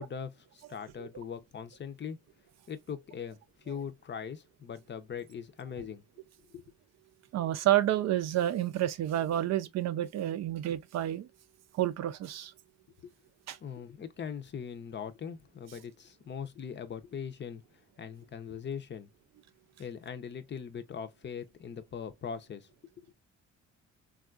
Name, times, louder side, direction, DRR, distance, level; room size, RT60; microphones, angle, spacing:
voice 1, 0.0-2.2 2.7-6.0 6.5-6.6 13.0-13.1 13.6-19.1 19.8-22.7, left 7 dB, 40° left, 0.5 m, -41 dB
voice 2, 7.3-11.3 11.7-12.5 13.5-13.6, right 12 dB, 60° right, 0.4 m, -29 dB
3.5 x 2.3 x 2.3 m
cardioid pair, 90°, 30 cm